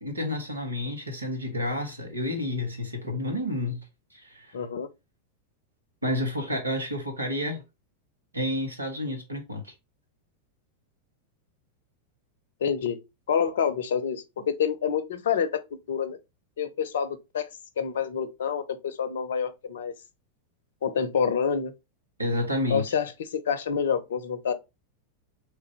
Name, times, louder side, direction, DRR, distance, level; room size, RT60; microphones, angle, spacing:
voice 1, 0.0-3.8 4.1-4.5 6.0-7.6 8.3-9.7 14.4-14.5 22.2-22.8, left 1 dB, 80° right, 1.2 m, -30 dB
voice 2, 4.5-4.9 12.6-13.0 13.3-15.6 15.9-16.2 16.6-17.5 17.8-19.9 20.8-21.7 22.7-24.5, left 7 dB, 60° left, 0.6 m, -27 dB
3.7 x 3.2 x 3.3 m
figure-of-eight pair, 90°, 0 cm